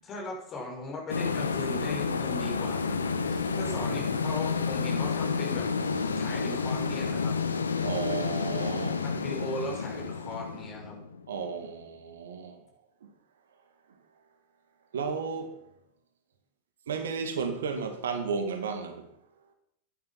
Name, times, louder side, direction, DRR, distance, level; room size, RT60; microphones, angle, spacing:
voice 1, 0.0-5.7 6.1-7.3 9.0-10.9, left 2 dB, 30° left, 6.3 m, -38 dB
sound 1, 1.1-11.6, left 5 dB, 75° left, 1.1 m, -30 dB
voice 2, 7.8-9.0 11.3-12.6 14.9-15.6 16.9-19.1, right 5 dB, 65° right, 2.1 m, -33 dB
15.5 x 11.0 x 5.9 m
figure-of-eight pair, 90°, 0 cm